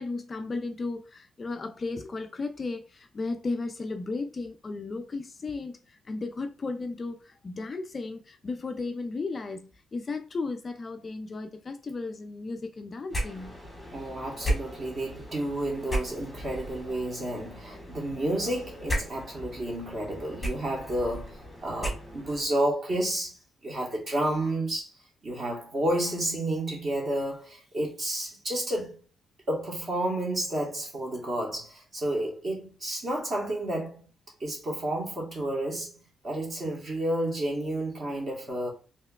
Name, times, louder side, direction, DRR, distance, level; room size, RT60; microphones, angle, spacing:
voice 1, 0.0-13.6, left 3 dB, 25° left, 0.3 m, -35 dB
sound 1, 13.1-22.5, right 1 dB, 10° left, 1.4 m, -36 dB
voice 2, 13.9-23.4 23.6-24.9 25.2-29.0 29.5-34.0 34.4-36.0 36.2-38.7, right 1 dB, 35° right, 1.3 m, -31 dB
4.4 x 2.9 x 2.3 m
cardioid pair, 155°, 0 cm